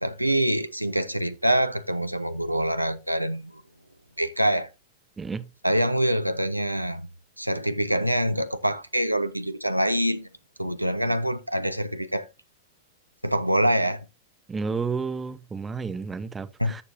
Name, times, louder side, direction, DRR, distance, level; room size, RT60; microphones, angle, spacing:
voice 1, 0.0-3.6 4.2-4.7 5.6-7.1 7.4-10.3 10.6-12.3 13.2-14.0 16.6-16.8, right 1 dB, 90° right, 0.5 m, -25 dB
voice 2, 14.5-16.8, right 5 dB, 15° right, 0.8 m, -31 dB
14.0 x 6.9 x 2.6 m
figure-of-eight pair, 90°, 0 cm